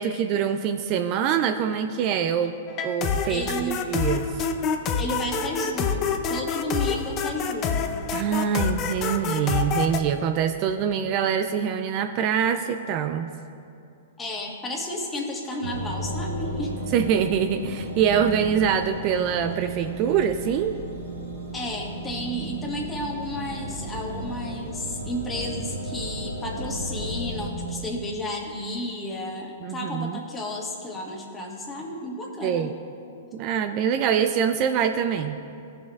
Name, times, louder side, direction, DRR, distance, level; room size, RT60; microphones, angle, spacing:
voice 1, 0.0-2.5 2.8-4.4 8.1-13.3 16.9-20.8 29.6-30.2 32.4-32.8 33.3-35.4, right 8 dB, 40° right, 8 dB, 0.3 m, -24 dB
sound 1, 2.7-10.0, left 5 dB, 35° left, 0.6 m, -27 dB
voice 2, 3.3-3.9 5.0-7.8 14.2-16.7 21.5-32.7, left 1 dB, 15° left, -1 dB, 1.4 m, -32 dB
sound 2, 15.6-27.5, right 1 dB, 85° right, 2.0 m, -34 dB
17.0 x 6.2 x 2.3 m, 2.7 s
hypercardioid pair, 115°, 0 cm